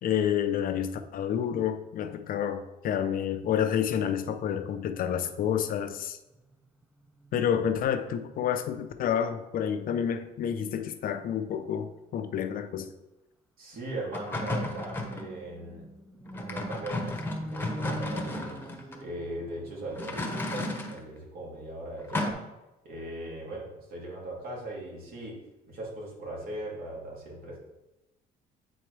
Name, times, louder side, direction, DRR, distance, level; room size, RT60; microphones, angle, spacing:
voice 1, 0.0-6.2 7.3-12.9, left 9 dB, 55° left, 8 dB, 0.6 m, -29 dB
sound 1, 6.3-9.1 9.4-9.6 9.9-10.2 11.6-12.0 14.4-20.1, equal, 5° right, 0.6 m, -44 dB
voice 2, 13.6-15.9 16.1-22.4 22.8-25.4 25.7-27.6, right 1 dB, 60° right, -3 dB, 2.5 m, -39 dB
sound 2, 14.1-15.3 16.3-19.0 19.9-21.0 22.1-22.3, left 2 dB, 15° left, 1.0 m, -33 dB
9.0 x 4.3 x 3.3 m, 1.0 s
cardioid pair, 110°, 17 cm